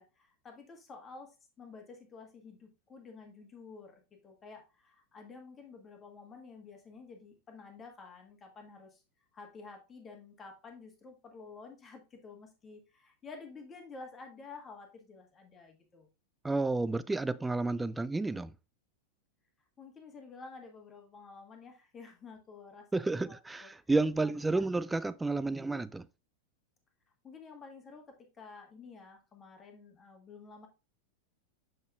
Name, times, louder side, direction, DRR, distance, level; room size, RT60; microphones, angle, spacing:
voice 1, 0.0-9.0 9.3-16.1 19.8-23.7 24.2-24.8 25.5-25.7 27.2-30.7, left 4 dB, 20° left, 1.6 m, -51 dB
voice 2, 16.4-18.5 22.9-26.1, right 3 dB, 10° right, 0.4 m, -31 dB
6.8 x 6.2 x 2.4 m
figure-of-eight pair, 90°, 0 cm